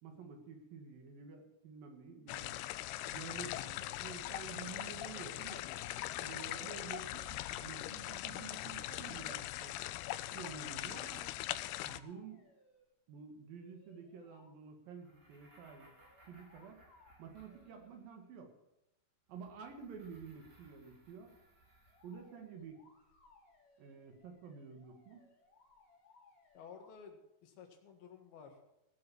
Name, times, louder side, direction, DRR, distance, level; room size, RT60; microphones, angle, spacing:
voice 1, 0.0-2.6 3.0-5.7 6.2-9.8 10.3-11.3 11.8-12.4 13.1-15.9 16.2-16.8 17.2-18.5 19.3-21.3 22.0-22.8 23.8-25.2, right 6 dB, 65° right, 4 dB, 3.4 m, -50 dB
sound 1, 2.3-12.0, left 15 dB, 85° left, 2.6 m, -41 dB
sound 2, 11.6-12.9 13.5-14.5 15.8-18.0 21.9-27.0, left 3 dB, 50° left, 4.1 m, -67 dB
sound 3, 14.9-18.2 19.3-22.4, right 1 dB, 30° right, 2.6 m, -65 dB
voice 2, 26.6-28.6, left 6 dB, 70° left, 4 dB, 3.5 m, -54 dB
18.0 x 7.8 x 7.0 m, 0.90 s
omnidirectional pair, 4.6 m